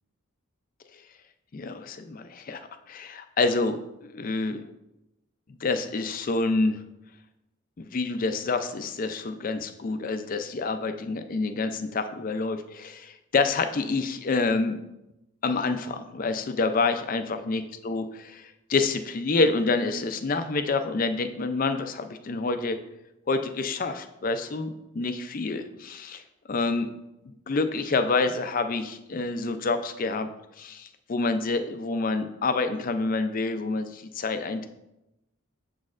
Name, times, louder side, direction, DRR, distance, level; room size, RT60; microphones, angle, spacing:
voice 1, 1.5-3.8 4.0-4.7 5.5-6.8 7.8-14.8 15.4-22.8 23.3-26.2 26.5-26.9 27.3-30.3 30.6-34.7, left 3 dB, 40° left, 9 dB, 0.4 m, -27 dB
7.2 x 6.2 x 2.5 m, 0.91 s
head